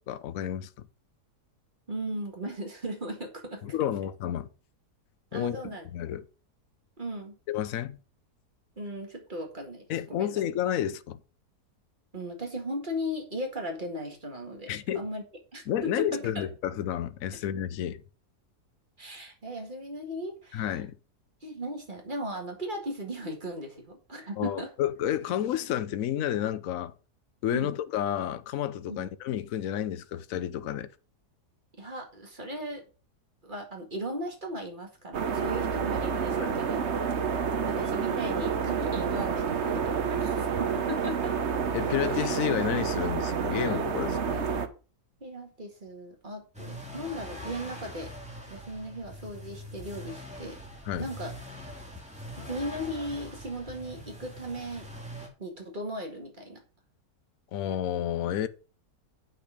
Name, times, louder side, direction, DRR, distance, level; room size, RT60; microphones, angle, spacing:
voice 1, 0.1-0.7 3.6-4.5 5.3-6.3 7.5-8.0 9.9-11.2 14.7-15.0 15.7-18.0 20.5-21.0 24.4-26.9 27.4-30.9 36.3-36.5 41.7-44.4 50.9-51.1 57.5-58.5, left 10 dB, 65° left, 1.1 m, -30 dB
voice 2, 1.9-3.6 5.3-5.9 7.0-7.4 8.8-10.4 12.1-15.2 15.5-16.5 19.0-20.8 21.4-24.7 27.5-27.7 28.9-29.1 31.8-32.8 33.4-36.8 37.7-41.4 43.5-43.8 45.2-48.1 48.5-50.6 51.0-51.3 52.4-54.9 55.4-56.6, equal, 30° right, 2.2 m, -37 dB
sound 1, 35.1-44.7, right 6 dB, 50° right, 1.1 m, -29 dB
sound 2, 46.5-55.3, equal, 5° right, 2.5 m, -43 dB
8.6 x 6.1 x 5.0 m
omnidirectional pair, 1.7 m